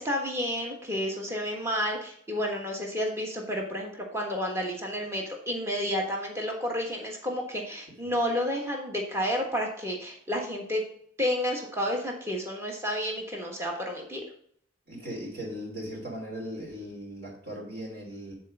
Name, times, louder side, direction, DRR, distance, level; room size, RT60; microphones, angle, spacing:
voice 1, 0.0-10.8 11.2-14.2, equal, 15° right, 0 dB, 1.3 m, -31 dB
voice 2, 14.9-18.4, equal, 50° right, -4 dB, 3.2 m, -38 dB
9.3 x 4.4 x 5.4 m, 0.65 s
head